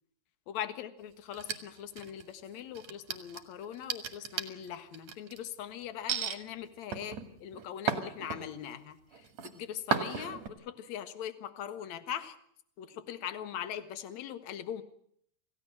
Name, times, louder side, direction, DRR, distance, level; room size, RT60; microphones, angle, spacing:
voice 1, 0.5-12.3 12.8-14.8, left 10 dB, 55° left, 10 dB, 2.4 m, -41 dB
sound 1, 1.3-2.3 2.8-5.4 6.1-6.4 6.9-8.7 9.1-9.5 9.9-10.5, right 6 dB, 50° right, 3.0 m, -35 dB
28.0 x 17.0 x 7.7 m, 0.69 s
omnidirectional pair, 4.5 m